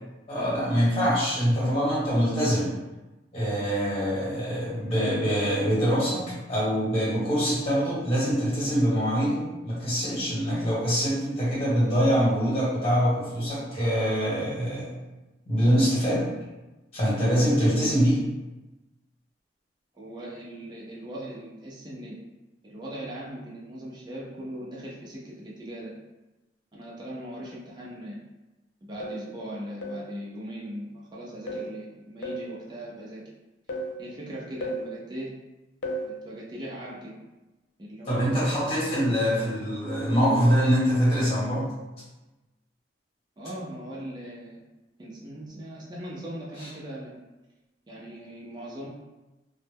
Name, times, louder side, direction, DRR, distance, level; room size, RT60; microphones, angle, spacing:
voice 1, 0.3-2.7 3.3-14.9 15.5-16.3 16.9-18.2 38.1-41.7 46.6-46.7, equal, 35° left, -8 dB, 1.2 m, -24 dB
voice 2, 19.9-22.2 22.6-25.9 26.7-28.2 28.8-33.2 34.0-35.3 36.0-37.2 37.8-38.5 43.4-44.6 45.0-47.2 47.9-48.9, equal, 25° right, -5 dB, 0.4 m, -39 dB
sound 1, 29.0-29.3 29.8-30.1 31.5-31.8 32.2-32.5 33.7-34.0 34.6-34.9 35.8-36.1 38.4-38.7 39.2-39.4, right 1 dB, 70° left, 0.4 m, -34 dB
2.0 x 2.0 x 3.3 m, 1.1 s
head